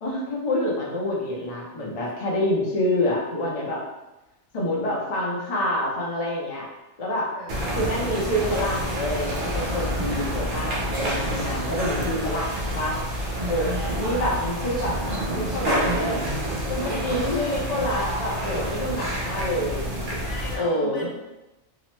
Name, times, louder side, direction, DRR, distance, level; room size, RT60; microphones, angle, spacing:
voice 1, 0.0-3.8 4.5-6.7 7.0-7.3 7.7-13.0 13.5-13.7 14.0-15.0 15.3-16.2 16.7-20.2 20.6-21.1, left 1 dB, 40° left, -4 dB, 0.5 m, -27 dB
voice 2, 7.3-7.8 13.3-13.7 16.7-17.3 20.2-21.2, left 3 dB, 75° left, -1 dB, 0.9 m, -41 dB
sound 1, 7.5-20.6, right 1 dB, 55° right, 0.6 m, -28 dB
2.8 x 2.0 x 3.1 m, 1.0 s
omnidirectional pair, 1.2 m